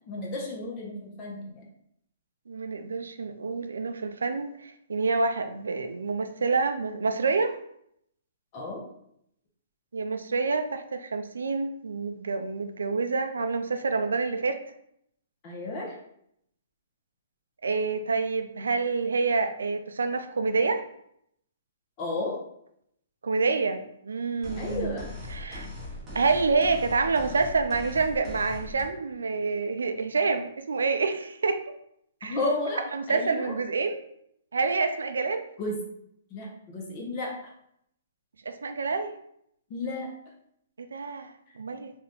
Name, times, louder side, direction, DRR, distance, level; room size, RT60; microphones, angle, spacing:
voice 1, 0.1-1.6 8.5-8.8 15.4-16.0 22.0-22.4 24.5-25.1 25.5-25.6 32.3-33.5 35.6-35.8 36.3-37.3 39.7-40.1, left 2 dB, 35° left, -2 dB, 0.7 m, -33 dB
voice 2, 2.5-7.6 9.9-14.6 17.6-20.9 23.2-25.0 25.3-25.7 26.1-31.6 32.2-32.4 32.9-34.1 34.5-35.4 38.5-39.1 40.8-41.9, right 4 dB, 90° right, 8 dB, 0.3 m, -27 dB
sound 1, 24.4-28.8, left 2 dB, 20° right, 0.9 m, -40 dB
2.7 x 2.3 x 3.5 m, 0.73 s
hypercardioid pair, 145°, 0 cm